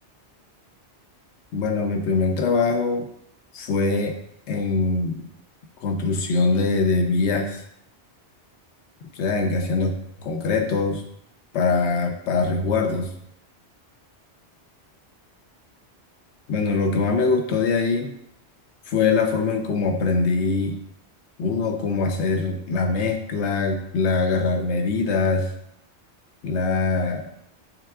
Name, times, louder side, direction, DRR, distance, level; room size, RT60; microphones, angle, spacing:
voice 1, 1.5-3.1 3.5-4.2 4.5-5.2 5.8-7.6 9.1-9.9 10.2-11.0 11.5-13.1 16.5-18.1 18.9-20.8 21.4-25.5 26.4-27.3, left 4 dB, 80° left, 4 dB, 1.0 m, -23 dB
5.7 x 3.6 x 2.3 m, 0.73 s
omnidirectional pair, 1.1 m